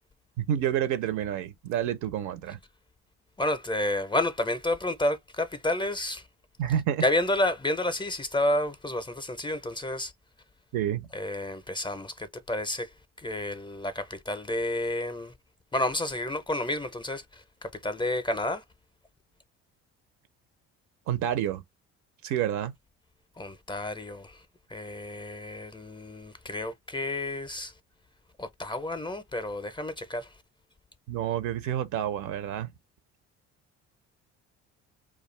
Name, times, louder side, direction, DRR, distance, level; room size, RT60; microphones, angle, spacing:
voice 1, 0.4-2.6 6.6-7.0 10.7-11.1 21.1-21.6 22.2-22.7 31.1-32.7, right 10 dB, 60° right, 0.6 m, -29 dB
voice 2, 3.4-6.3 7.0-10.1 11.1-15.3 15.7-18.6 23.4-24.4 24.7-27.7 28.4-30.4, left 1 dB, 15° left, 0.5 m, -30 dB
2.4 x 2.3 x 3.1 m
hypercardioid pair, 65°, 33 cm